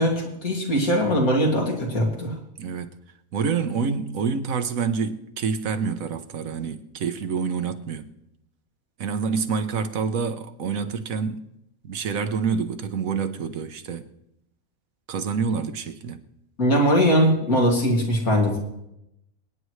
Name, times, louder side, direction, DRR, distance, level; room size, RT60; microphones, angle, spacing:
voice 1, 0.0-2.3 16.6-18.6, equal, 85° left, 3.1 m, -21 dB
voice 2, 2.6-2.9 3.3-8.1 9.0-11.4 11.8-14.1 15.1-16.2, right 5 dB, 75° right, 1.3 m, -27 dB
27.5 x 9.5 x 3.2 m
omnidirectional pair, 1.5 m